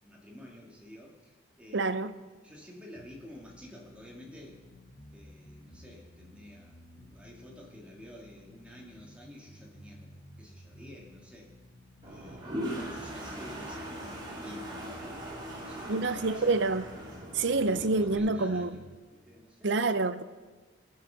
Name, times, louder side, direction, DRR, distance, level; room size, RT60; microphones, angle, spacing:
voice 1, 0.0-4.6 5.1-11.5 12.0-16.6 17.5-19.8, left 1 dB, 5° right, 2.2 m, -50 dB
voice 2, 1.7-2.1 15.9-16.8 17.3-18.8 19.6-20.2, right 3 dB, 65° right, 0.6 m, -27 dB
sound 1, 2.9-19.0, equal, 55° left, 1.3 m, -54 dB
Toilet flush, 12.0-18.2, equal, 25° right, 2.7 m, -40 dB
19.5 x 7.5 x 5.8 m
head